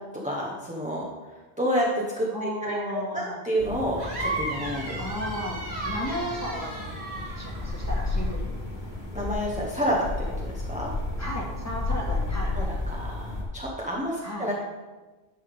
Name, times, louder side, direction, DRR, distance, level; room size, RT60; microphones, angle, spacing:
voice 1, 0.2-1.1 1.6-1.9 2.2-4.9 9.1-10.1 10.4-10.9 12.5-14.5, equal, 5° right, -4 dB, 0.9 m, -29 dB
voice 2, 2.3-3.4 5.0-7.1 7.3-8.5 11.2-12.6 14.2-14.5, equal, 15° left, -3 dB, 1.5 m, -34 dB
sound 1, 3.6-13.4, left 2 dB, 45° left, 1.7 m, -32 dB
sound 2, 4.0-8.4, right 2 dB, 75° right, 1.9 m, -35 dB
10.0 x 5.6 x 3.6 m, 1.2 s
omnidirectional pair, 1.1 m